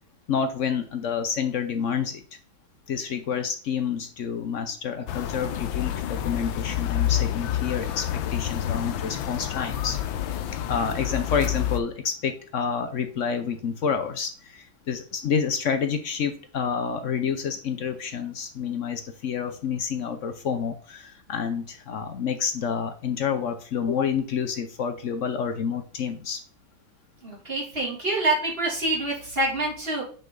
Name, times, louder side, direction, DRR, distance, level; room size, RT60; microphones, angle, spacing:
voice 1, 0.3-2.2 2.9-10.0 10.5-26.4, left 6 dB, 60° left, 8 dB, 0.8 m, -28 dB
sound 1, 5.1-11.8, left 11 dB, 85° left, 1.5 m, -28 dB
voice 2, 27.2-30.0, right 2 dB, 30° right, -2 dB, 2.9 m, -26 dB
7.5 x 5.5 x 3.8 m, 0.41 s
omnidirectional pair, 2.1 m